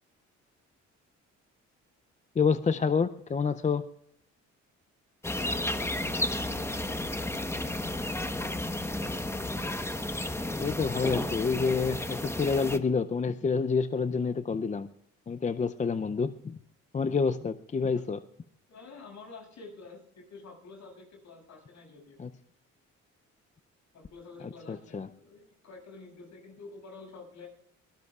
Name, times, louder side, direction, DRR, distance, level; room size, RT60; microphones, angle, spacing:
voice 1, 2.4-3.8 10.6-14.9 15.3-16.6 16.9-18.2 22.2-22.3 24.7-25.1, left 5 dB, 25° left, 11 dB, 0.5 m, -28 dB
sound 1, 5.2-12.8, left 1 dB, 10° left, 1.1 m, -32 dB
voice 2, 5.3-6.7 7.0-7.7 17.9-18.0 18.7-22.2 23.9-27.5, left 3 dB, 70° left, 2 dB, 7.1 m, -49 dB
23.5 x 19.0 x 2.4 m, 0.72 s
cardioid pair, 90°, 30 cm